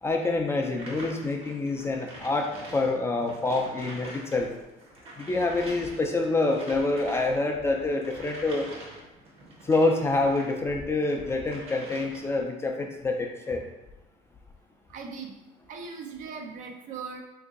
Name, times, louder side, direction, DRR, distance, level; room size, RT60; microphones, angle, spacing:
voice 1, 0.0-4.5 5.2-8.7 9.7-13.6, left 2 dB, 15° left, 2 dB, 0.3 m, -27 dB
sound 1, 0.6-4.4 4.7-10.6 11.0-12.4, right 1 dB, 40° right, 0.9 m, -45 dB
voice 2, 14.9-15.4 15.7-17.2, right 5 dB, 55° right, 2 dB, 0.5 m, -39 dB
2.9 x 2.6 x 3.6 m, 1.0 s
cardioid pair, 135°, 16 cm